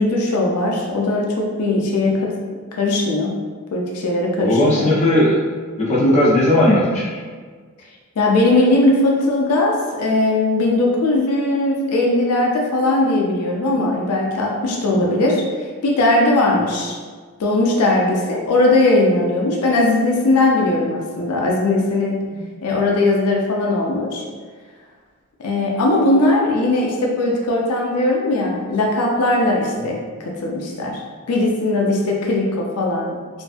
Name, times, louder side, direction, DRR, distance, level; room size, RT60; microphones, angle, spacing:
voice 1, 0.0-2.4 2.7-3.4 3.7-4.9 8.2-15.4 15.8-17.0 17.4-22.2 22.6-24.2 25.4-31.0 31.3-33.2, left 2 dB, 90° left, 0 dB, 0.4 m, -19 dB
voice 2, 4.4-5.4 5.8-7.2 14.9-15.1 22.3-22.8 29.7-29.9, left 1 dB, 30° left, -7 dB, 0.5 m, -17 dB
2.5 x 2.3 x 2.4 m, 1.6 s
head